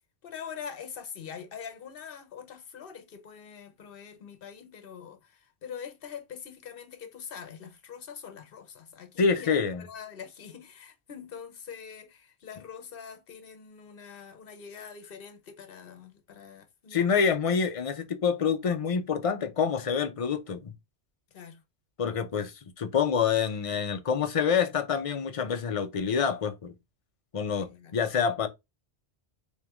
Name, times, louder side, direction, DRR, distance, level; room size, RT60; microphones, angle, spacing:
voice 1, 0.2-17.2 21.3-21.6 27.7-28.0, left 7 dB, 60° left, 1.0 m, -44 dB
voice 2, 9.2-9.8 16.9-20.7 22.0-26.8 27.3-28.5, left 6 dB, 40° left, 0.6 m, -27 dB
3.6 x 3.3 x 3.4 m
omnidirectional pair, 1.1 m